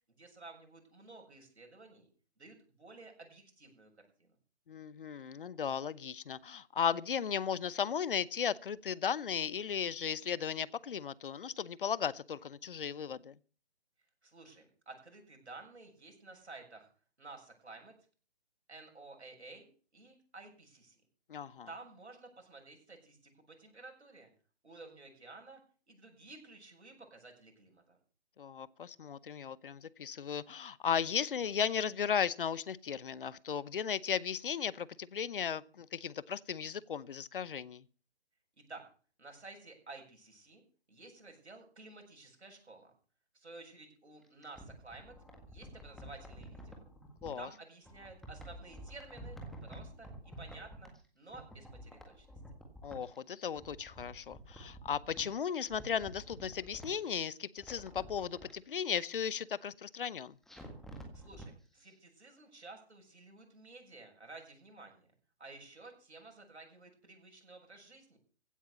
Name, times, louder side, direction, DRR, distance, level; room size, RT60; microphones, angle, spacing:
voice 1, 0.1-2.1 2.4-3.9 4.2-4.3 14.2-16.9 17.2-17.9 18.7-19.7 19.9-21.0 21.7-24.3 24.6-25.6 25.9-28.0 38.7-38.8 39.2-40.6 40.9-42.9 43.3-45.1 45.5-46.8 47.4-52.3 61.1-65.1 65.4-68.2, right 3 dB, 80° right, 7.4 m, -53 dB
voice 2, 4.7-13.4 21.3-21.7 28.4-37.8 47.2-47.5 52.8-60.4, left 7 dB, 50° left, 0.8 m, -36 dB
sound 1, 44.2-47.4 47.8-51.1 51.3-53.2 53.5-55.3 55.7-57.2 57.5-58.5 60.5-61.5 61.8-61.9, equal, ahead, 1.7 m, -50 dB
16.0 x 9.2 x 7.1 m
figure-of-eight pair, 145°, 33 cm